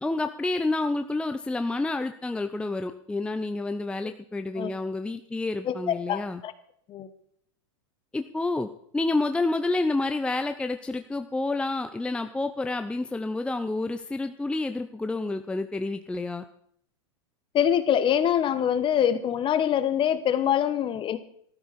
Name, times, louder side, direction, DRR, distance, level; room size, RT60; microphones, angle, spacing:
voice 1, 0.0-6.4 8.1-8.7 8.9-16.4, left 2 dB, 5° left, 8 dB, 0.6 m, -29 dB
voice 2, 5.6-6.5 6.9-7.1 17.5-21.2, left 9 dB, 30° left, 13 dB, 1.2 m, -24 dB
14.0 x 13.0 x 4.2 m, 0.66 s
hypercardioid pair, 110°, 16 cm